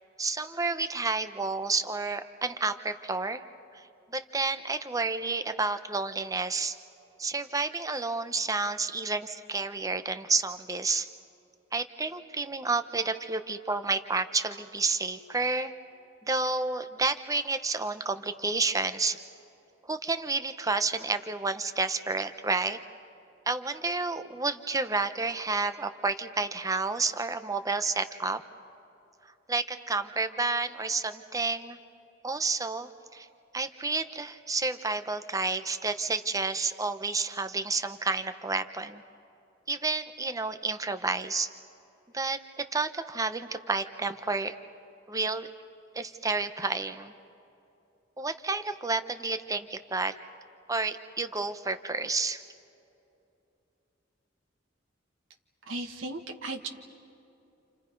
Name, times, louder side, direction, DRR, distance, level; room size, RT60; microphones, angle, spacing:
voice 1, 0.2-3.4 3.7-6.8 7.2-11.1 11.7-15.7 16.2-19.2 19.8-22.8 23.5-28.4 29.5-31.8 32.2-33.3 33.5-39.0 39.7-41.5 42.1-44.5 45.1-45.5 45.9-47.1 48.2-50.2 50.7-52.4, right 3 dB, 15° right, 10 dB, 0.9 m, -30 dB
voice 2, 55.7-56.7, right 2 dB, 90° right, 3 dB, 1.7 m, -36 dB
30.0 x 28.5 x 5.3 m, 2.8 s
head